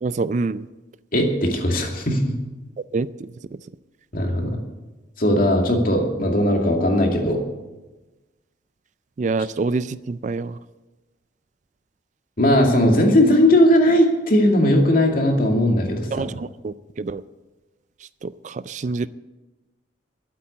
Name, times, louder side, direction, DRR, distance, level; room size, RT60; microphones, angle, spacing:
voice 1, 0.0-0.7 2.9-3.3 9.2-10.6 16.1-17.2 18.2-19.1, right 3 dB, 40° right, 16 dB, 0.3 m, -26 dB
voice 2, 1.1-2.3 4.1-4.6 5.2-7.4 12.4-16.3, left 1 dB, 50° left, 2 dB, 2.4 m, -18 dB
13.0 x 8.6 x 8.4 m, 1.1 s
head